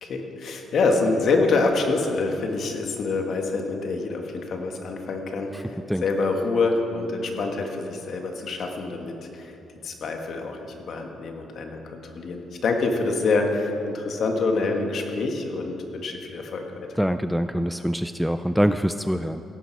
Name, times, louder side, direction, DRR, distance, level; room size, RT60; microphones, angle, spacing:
voice 1, 0.0-9.5 9.8-16.9, left 3 dB, 60° left, 3 dB, 1.7 m, -26 dB
voice 2, 17.0-19.4, equal, ahead, 10 dB, 0.4 m, -24 dB
16.5 x 10.5 x 4.7 m, 2.8 s
cardioid pair, 90°, 0 cm